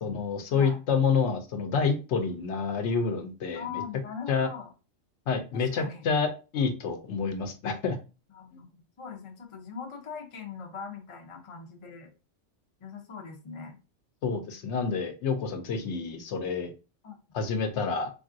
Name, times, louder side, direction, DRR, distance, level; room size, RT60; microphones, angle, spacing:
voice 1, 0.0-3.8 4.3-4.5 5.3-6.3 6.5-8.0 14.2-16.7 17.3-18.1, left 5 dB, 70° left, 7 dB, 0.8 m, -28 dB
voice 2, 3.5-4.7 5.5-6.1 8.3-12.1 12.8-13.8 17.0-17.2, left 6 dB, 40° left, 3 dB, 0.4 m, -41 dB
3.4 x 2.4 x 2.5 m, 0.32 s
omnidirectional pair, 1.3 m